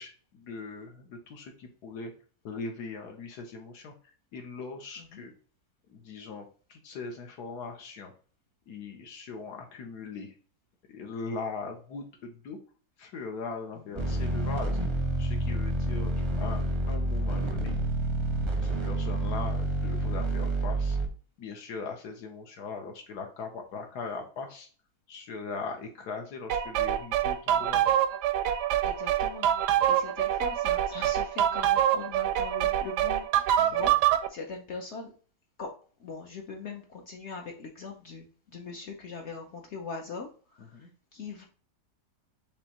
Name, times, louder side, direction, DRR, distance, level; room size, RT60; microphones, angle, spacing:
voice 1, 0.0-2.1 2.4-5.3 5.9-8.1 8.7-10.3 10.9-12.6 13.0-14.8 15.2-17.7 18.5-21.0 21.4-24.7 25.1-27.9 33.6-34.0 40.7-40.9, left 4 dB, 75° left, 3 dB, 1.4 m, -40 dB
sound 1, 14.0-21.1, right 1 dB, 30° right, 0.5 m, -29 dB
sound 2, 26.5-34.3, right 11 dB, 80° right, 1.1 m, -25 dB
voice 2, 28.8-29.6 29.9-35.1 35.6-35.7 36.0-41.4, left 4 dB, 55° left, 2 dB, 0.8 m, -41 dB
5.2 x 3.0 x 2.9 m, 0.41 s
omnidirectional pair, 1.8 m